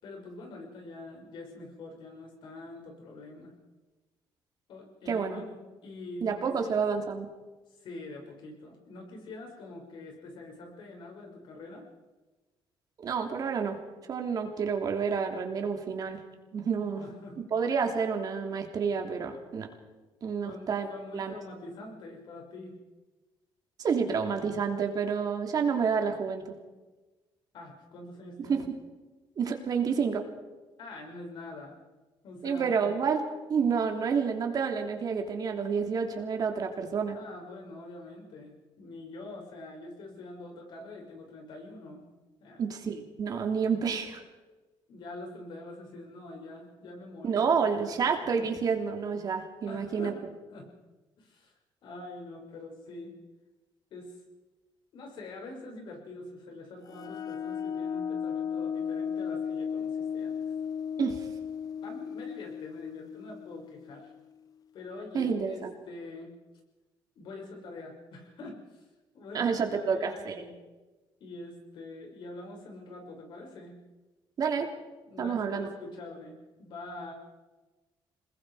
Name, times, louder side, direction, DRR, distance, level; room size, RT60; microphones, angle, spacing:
voice 1, 0.0-3.6 4.7-6.8 7.7-11.9 17.0-17.4 20.4-22.8 27.5-28.7 30.8-31.8 32.2-32.8 37.1-42.1 42.4-42.7 44.9-48.0 48.3-48.5 49.7-50.2 50.5-50.7 51.2-51.5 51.8-53.2 53.9-54.2 54.9-60.4 61.8-64.1 64.7-66.4 67.1-68.8 69.1-70.6 71.2-73.8 75.1-77.1, left 2 dB, 65° left, 1 dB, 6.5 m, -45 dB
voice 2, 5.1-5.4 6.2-7.3 13.0-13.8 14.1-16.2 16.5-17.0 17.5-19.7 20.2-20.9 21.1-21.3 23.8-26.5 28.5-28.6 29.4-30.2 32.4-33.2 33.5-37.2 42.6-44.2 47.2-50.2 61.0-61.3 65.1-65.7 69.3-70.4 74.4-74.7 75.2-75.7, right 6 dB, 45° right, 4 dB, 3.1 m, -29 dB
sound 1, 56.9-64.3, left 7 dB, 45° left, 0.7 m, -35 dB
26.5 x 21.0 x 5.0 m, 1.2 s
cardioid pair, 130°, 9 cm